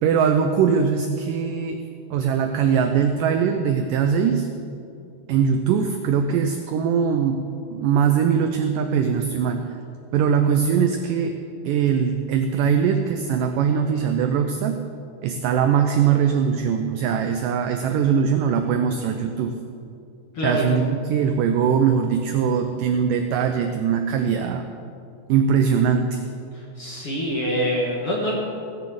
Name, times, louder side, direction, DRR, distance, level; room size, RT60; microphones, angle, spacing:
voice 1, 0.0-1.8 2.1-4.5 5.3-9.7 10.1-11.4 11.7-14.9 15.2-19.6 20.4-24.7 25.3-26.2, right 7 dB, 85° right, 6 dB, 1.9 m, -21 dB
voice 2, 26.8-28.3, equal, 55° left, -3 dB, 1.6 m, -24 dB
17.0 x 6.8 x 7.9 m, 2.6 s
omnidirectional pair, 4.6 m